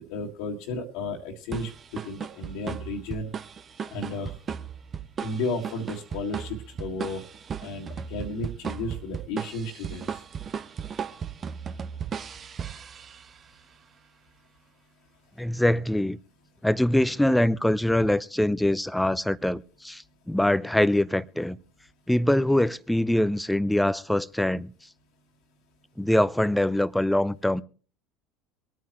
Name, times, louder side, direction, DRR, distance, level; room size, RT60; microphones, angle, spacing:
voice 1, 0.1-3.3 3.9-4.3 5.2-7.2 7.6-10.1, left 2 dB, 65° left, 1.9 m, -33 dB
sound 1, 1.5-13.5, right 7 dB, 35° right, 0.8 m, -36 dB
voice 2, 15.4-16.2 16.6-21.6 22.1-24.7 26.0-27.6, left 1 dB, 5° left, 0.6 m, -23 dB
24.0 x 9.3 x 3.1 m
hypercardioid pair, 70°, 0 cm